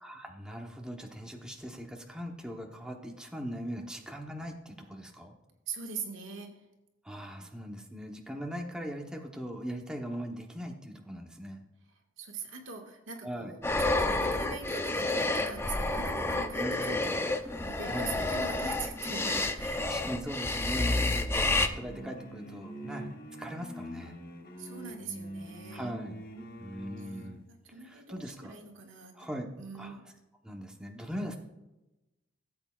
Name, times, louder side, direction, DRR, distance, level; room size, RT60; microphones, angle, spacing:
voice 1, 0.0-5.3 7.0-11.6 13.2-13.5 16.3-17.0 17.9-18.1 19.9-23.1 23.4-24.2 25.7-26.2 26.6-27.4 27.8-28.5 29.1-29.5 29.8-30.0 30.4-31.4, equal, 5° right, 1 dB, 1.0 m, -40 dB
voice 2, 5.7-6.6 12.2-20.0 24.6-25.9 27.2-29.2 29.6-30.0, right 5 dB, 80° right, 2 dB, 1.7 m, -42 dB
sound 1, 13.6-21.7, left 2 dB, 10° left, 0.5 m, -30 dB
sound 2, 21.6-27.4, equal, 50° left, 1.2 m, -44 dB
16.5 x 8.0 x 2.4 m, 0.98 s
head